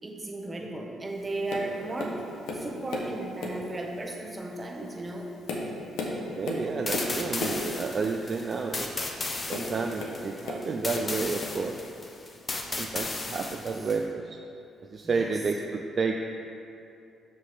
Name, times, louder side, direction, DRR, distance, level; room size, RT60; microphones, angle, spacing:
voice 1, 0.0-5.3 15.0-15.3, right 2 dB, 25° right, 2 dB, 0.9 m, -35 dB
Tap, 1.5-1.7 2.0-3.1 3.4-3.8 4.4-4.6 5.1-7.7 9.5-10.7 10.9-11.7 12.4-12.5, left 2 dB, 90° left, 1.0 m, -34 dB
voice 2, 6.3-8.9 9.5-11.8 12.8-14.4 14.9-16.1, right 4 dB, 45° right, 3 dB, 0.4 m, -30 dB
sound 1, 6.9-14.0, left 2 dB, 30° left, 0.8 m, -35 dB
5.9 x 5.7 x 5.1 m, 2.7 s
cardioid pair, 90°, 0 cm